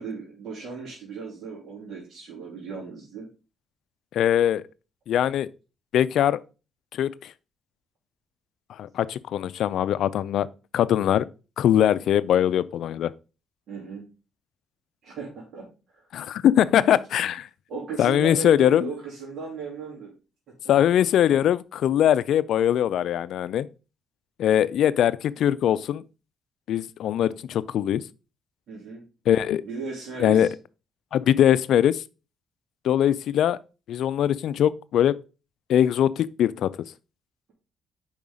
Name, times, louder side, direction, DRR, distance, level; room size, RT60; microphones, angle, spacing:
voice 1, 0.0-3.3 13.7-14.1 15.0-16.1 17.7-20.1 28.7-29.0 29.6-30.5, right 5 dB, 65° right, 2.8 m, -36 dB
voice 2, 4.1-4.6 5.1-5.5 5.9-6.4 6.9-7.3 8.8-10.5 10.7-11.3 11.6-13.1 16.1-17.5 18.0-18.9 20.7-23.7 24.4-26.0 26.7-28.0 29.3-29.6 30.2-30.5 31.1-32.0 32.8-33.6 33.9-35.1 35.7-36.7, left 10 dB, 75° left, 0.4 m, -21 dB
5.4 x 4.8 x 4.9 m
cardioid pair, 90°, 0 cm